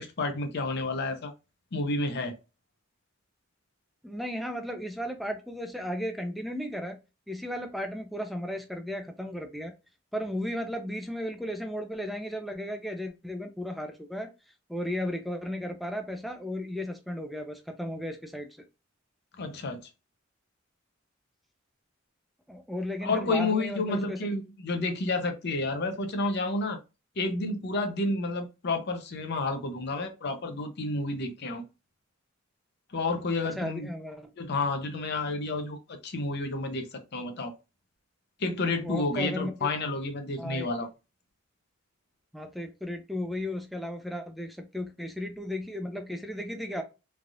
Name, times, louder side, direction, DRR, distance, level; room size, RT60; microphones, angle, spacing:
voice 1, 0.0-1.3 1.7-2.4 19.4-19.9 23.0-26.8 27.2-31.6 32.9-33.9 34.4-37.5 38.4-40.9, left 2 dB, 55° left, 0.6 m, -30 dB
voice 2, 4.0-7.0 7.3-9.7 10.1-14.3 14.7-18.5 22.5-24.3 33.6-34.3 38.8-39.5 40.4-40.7 42.3-46.8, equal, ahead, 0.4 m, -35 dB
3.2 x 2.3 x 2.6 m
head